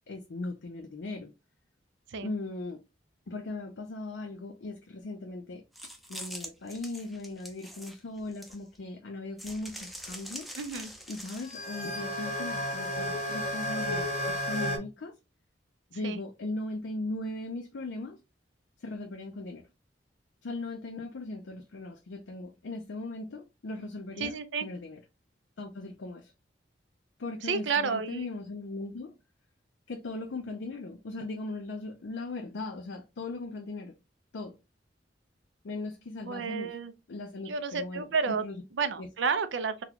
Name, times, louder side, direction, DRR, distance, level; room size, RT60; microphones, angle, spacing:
voice 1, 0.1-1.3 2.2-2.8 3.3-10.5 11.1-15.2 15.9-18.2 18.8-19.7 20.4-24.4 24.6-25.0 25.6-26.3 27.2-29.1 29.9-33.9 34.3-34.6 35.6-36.7 37.1-38.6 39.0-39.1, left 2 dB, 75° left, 0.5 m, -38 dB
sound 1, 5.7-8.8 9.4-11.7, equal, ahead, 0.5 m, -44 dB
voice 2, 10.6-10.9 16.0-16.2 24.2-24.7 27.4-28.3 36.2-36.9 37.5-38.4 38.7-39.8, right 5 dB, 85° right, 0.5 m, -31 dB
sound 2, 11.4-14.8, equal, 40° left, 0.8 m, -32 dB
3.9 x 2.3 x 2.8 m
head